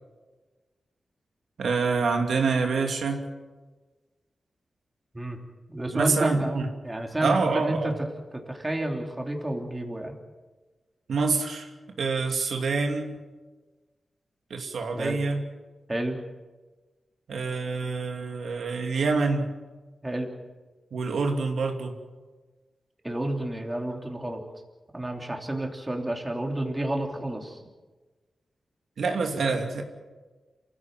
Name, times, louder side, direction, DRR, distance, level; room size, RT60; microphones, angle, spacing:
voice 1, 1.6-3.3 5.9-6.7 7.2-7.9 11.1-11.7 12.0-13.2 14.5-15.4 17.3-19.5 20.9-22.0 29.0-29.8, right 4 dB, 85° right, 3 dB, 2.7 m, -26 dB
voice 2, 5.7-7.9 8.3-10.1 14.9-15.2 15.9-16.2 20.0-20.3 23.0-24.4 24.9-27.6, right 1 dB, 15° right, 2 dB, 3.2 m, -30 dB
28.5 x 15.5 x 7.7 m, 1.3 s
wide cardioid pair, 115°, 0 cm